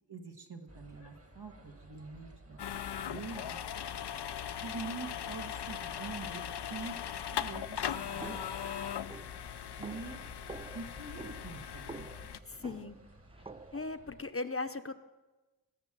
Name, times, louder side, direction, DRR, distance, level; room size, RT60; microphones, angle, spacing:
voice 1, 0.1-3.6 4.6-6.4 6.7-6.9 7.3-8.4 9.6-10.2 10.7-12.3, right 4 dB, 75° right, 3 dB, 1.5 m, -45 dB
sound 1, 0.7-14.3, right 1 dB, 35° right, 1.5 m, -56 dB
sound 2, 2.6-12.4, left 9 dB, 80° left, 0.5 m, -39 dB
sound 3, 8.2-14.0, right 3 dB, 15° right, 0.4 m, -49 dB
voice 2, 12.5-13.0 13.7-14.9, left 3 dB, 35° left, 9 dB, 0.7 m, -38 dB
17.5 x 6.1 x 7.5 m, 1.1 s
wide cardioid pair, 50°, 40 cm